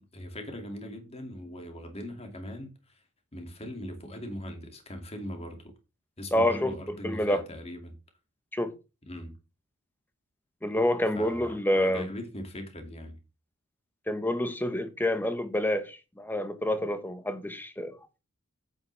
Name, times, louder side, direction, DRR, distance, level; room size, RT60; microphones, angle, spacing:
voice 1, 0.0-2.9 3.3-5.7 6.2-8.0 9.1-9.4 11.2-13.2, equal, 25° left, 2.5 m, -40 dB
voice 2, 6.3-6.7 7.0-7.4 8.5-8.7 10.6-12.1 14.1-18.0, left 1 dB, 10° left, 1.2 m, -28 dB
9.0 x 8.8 x 3.4 m
head